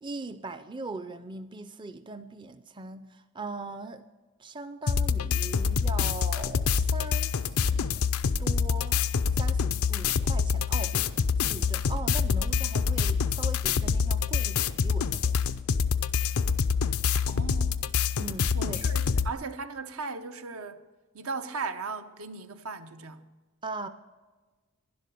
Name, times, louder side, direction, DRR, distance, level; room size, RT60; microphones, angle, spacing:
voice 1, 0.0-4.0 4.4-8.0 8.4-9.0 9.3-11.1 11.4-15.4 18.2-18.8 23.6-23.9, right 3 dB, 20° right, 0.4 m, -40 dB
sound 1, 4.9-19.3, left 6 dB, 90° left, 0.5 m, -26 dB
voice 2, 17.3-17.9 18.5-20.9 21.1-23.2, right 4 dB, 80° right, 0.9 m, -37 dB
11.5 x 11.0 x 6.8 m
head